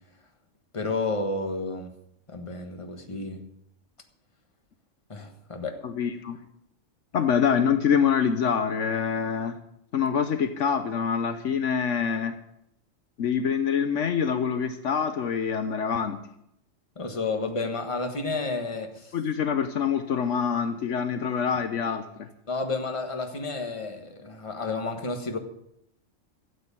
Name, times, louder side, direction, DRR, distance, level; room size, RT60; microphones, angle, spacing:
voice 1, 0.7-1.9 2.3-3.4 5.1-5.8 16.9-19.1 22.5-25.4, left 3 dB, 25° left, 5 dB, 1.5 m, -31 dB
voice 2, 5.8-6.4 7.1-9.6 9.9-12.4 13.2-16.2 19.1-22.3, left 7 dB, 70° left, 9 dB, 1.1 m, -25 dB
13.0 x 8.1 x 8.3 m, 0.76 s
omnidirectional pair, 1.3 m